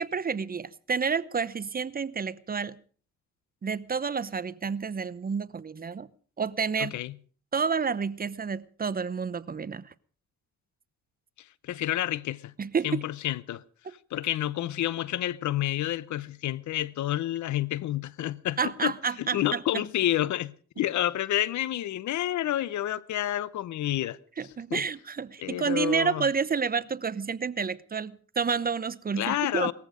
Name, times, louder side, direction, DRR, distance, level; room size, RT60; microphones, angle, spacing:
voice 1, 0.0-2.8 3.6-6.1 6.4-7.0 7.5-9.9 12.6-13.0 13.8-13.9 18.6-19.8 24.4-29.7, right 5 dB, 30° right, 0.8 m, -30 dB
voice 2, 6.8-7.1 11.6-12.5 12.8-13.6 14.1-18.9 19.2-24.2 24.7-24.8 25.4-26.2 29.2-29.7, left 13 dB, 70° left, 0.8 m, -29 dB
19.5 x 14.5 x 5.0 m
cardioid pair, 90°, 30 cm